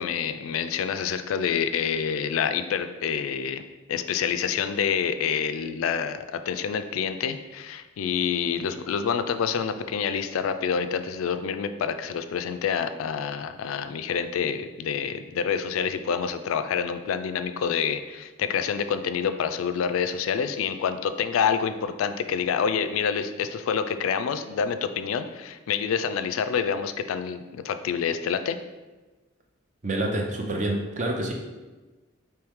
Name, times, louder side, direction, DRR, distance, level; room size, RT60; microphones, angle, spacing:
voice 1, 0.0-3.6 3.9-28.6, left 7 dB, 90° left, 10 dB, 0.3 m, -27 dB
voice 2, 29.8-31.3, right 1 dB, 35° right, 1 dB, 0.5 m, -27 dB
4.6 x 3.1 x 3.5 m, 1.2 s
head